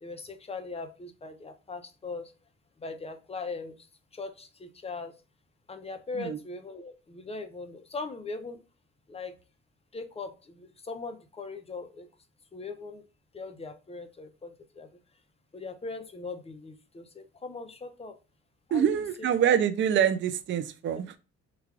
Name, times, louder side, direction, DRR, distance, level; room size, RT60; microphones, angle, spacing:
voice 1, 0.0-2.3 2.8-3.9 4.1-5.1 5.7-8.6 9.1-9.4 9.9-12.1 12.5-13.0 13.3-14.9 15.5-18.2 18.7-19.0 20.9-21.0, left 3 dB, 20° left, 7 dB, 0.5 m, -40 dB
voice 2, 18.7-21.2, right 8 dB, 40° right, 10 dB, 0.4 m, -25 dB
3.1 x 2.4 x 3.5 m, 0.32 s
cardioid pair, 90°, 30 cm